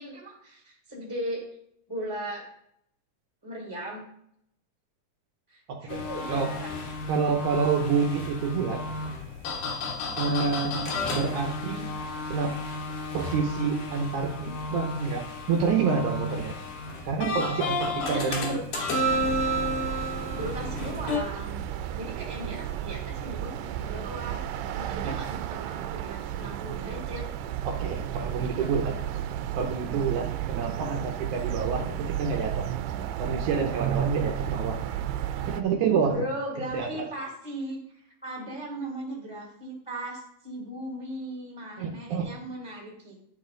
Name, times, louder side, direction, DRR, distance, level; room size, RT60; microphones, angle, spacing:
voice 1, 0.0-1.4 1.9-2.4 3.4-4.0 5.5-6.7 10.3-10.5 18.0-19.4 20.3-21.6 21.9-24.4 24.7-27.3 28.6-29.0 36.0-43.1, right 1 dB, 10° left, -3 dB, 1.5 m, -37 dB
voice 2, 5.7-6.5 7.1-8.8 10.2-11.9 12.3-12.6 13.1-15.2 15.5-16.6 17.1-18.6 25.0-25.2 27.6-29.0 29.6-32.7 33.2-34.8 35.5-36.2 36.7-37.1 41.8-42.3, right 5 dB, 75° right, 3 dB, 2.0 m, -28 dB
sound 1, 5.9-21.2, left 1 dB, 75° left, 3.0 m, -32 dB
sound 2, 19.0-35.6, right 10 dB, 90° right, 2.3 m, -33 dB
11.0 x 5.3 x 3.8 m, 0.70 s
omnidirectional pair, 3.9 m